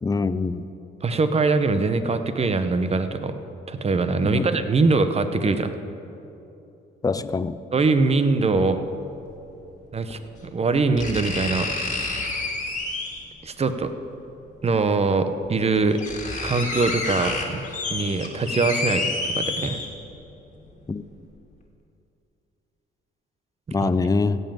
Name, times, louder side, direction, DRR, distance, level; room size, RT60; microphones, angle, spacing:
voice 1, 0.0-0.6 4.2-4.4 7.0-7.6 20.9-21.0 23.7-24.4, left 4 dB, 20° left, 14 dB, 0.4 m, -24 dB
voice 2, 1.0-3.3 3.7-5.7 7.7-8.8 9.9-12.2 13.4-13.9 14.6-16.0 16.4-17.6 17.9-19.8 23.8-23.9, right 3 dB, 30° right, 9 dB, 0.8 m, -23 dB
sound 1, 8.5-8.6 10.1-10.2 11.0-13.3 14.7-14.8 15.4-15.5 15.8-20.2 20.6-20.7, left 3 dB, 40° left, 2.0 m, -29 dB
16.0 x 5.5 x 7.5 m, 2.8 s
cardioid pair, 90°, 20 cm